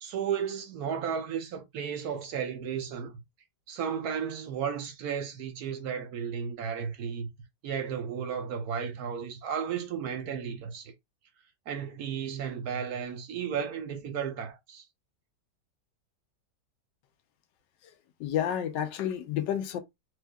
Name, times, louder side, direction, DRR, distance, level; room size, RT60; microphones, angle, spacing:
voice 1, 0.0-3.1 3.7-7.3 7.6-10.9 11.7-14.8, right 7 dB, 65° right, 1.1 m, -34 dB
voice 2, 18.2-19.8, left 10 dB, 90° left, 1.3 m, -30 dB
4.5 x 2.5 x 2.3 m
omnidirectional pair, 1.9 m